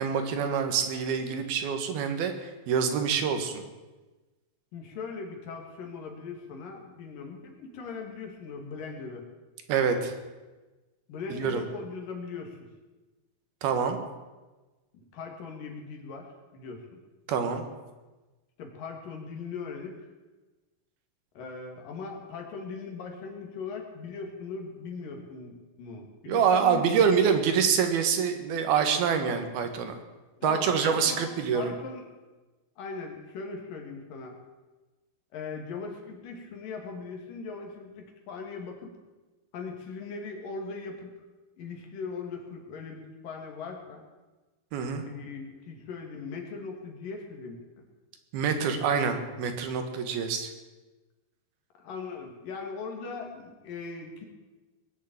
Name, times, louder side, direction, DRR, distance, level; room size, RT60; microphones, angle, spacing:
voice 1, 0.0-3.6 9.7-10.1 11.3-11.6 13.6-14.0 17.3-17.7 26.3-29.9 30.4-31.7 44.7-45.1 48.3-50.5, right 6 dB, 85° right, 7 dB, 3.4 m, -26 dB
voice 2, 4.7-9.3 11.1-12.7 14.9-17.0 18.6-20.0 21.4-27.0 30.4-32.2 32.8-34.4 35.3-38.9 39.5-41.1 41.6-44.0 45.0-47.6 51.8-54.3, left 4 dB, 65° left, 2 dB, 3.7 m, -39 dB
20.5 x 7.4 x 8.8 m, 1.2 s
omnidirectional pair, 4.3 m